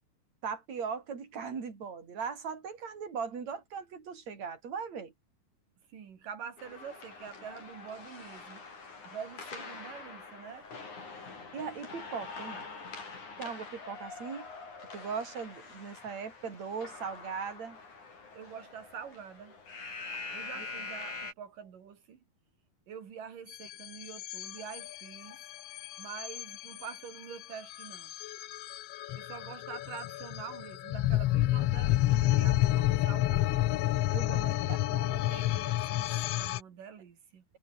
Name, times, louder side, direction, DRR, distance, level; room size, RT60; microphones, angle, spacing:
voice 1, 0.4-5.1 11.5-12.7 13.4-14.5 14.9-17.8 20.5-20.7 34.1-34.8 35.3-35.4, right 6 dB, 55° right, 5.4 m, -39 dB
voice 2, 5.9-8.6 9.0-10.7 18.3-19.6 20.3-22.2 22.9-25.4 26.0-28.1 29.2-33.6 34.3-34.6 34.9-37.4, right 7 dB, 80° right, 4.5 m, -46 dB
sound 1, 6.6-21.3, left 4 dB, 65° left, 7.5 m, -45 dB
sound 2, 23.5-36.6, left 15 dB, 90° left, 1.3 m, -30 dB
omnidirectional pair, 3.8 m